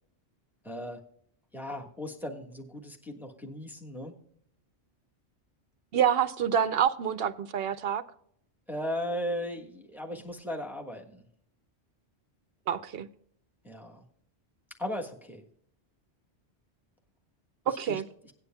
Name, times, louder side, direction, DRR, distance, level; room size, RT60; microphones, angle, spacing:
voice 1, 0.6-1.0 1.5-4.1 8.7-11.2 13.6-14.0 14.8-15.4 17.9-18.0, equal, ahead, 1.4 m, -36 dB
voice 2, 5.9-8.0 12.7-13.1 17.7-18.0, right 8 dB, 65° right, 0.8 m, -27 dB
17.5 x 9.6 x 2.2 m
omnidirectional pair, 1.1 m